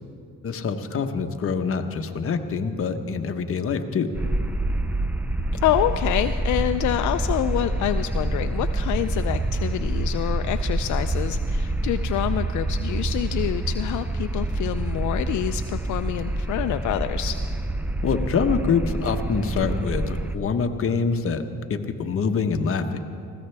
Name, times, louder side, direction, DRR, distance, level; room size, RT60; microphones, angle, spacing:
voice 1, 0.4-4.1 18.0-21.4 21.7-23.0, left 5 dB, 45° left, 6 dB, 1.1 m, -25 dB
sound 1, 4.1-20.4, right 2 dB, 5° right, 0.5 m, -27 dB
voice 2, 5.6-17.4, left 12 dB, 75° left, 9 dB, 0.5 m, -27 dB
20.0 x 15.5 x 3.4 m, 2.5 s
cardioid pair, 90°, 30 cm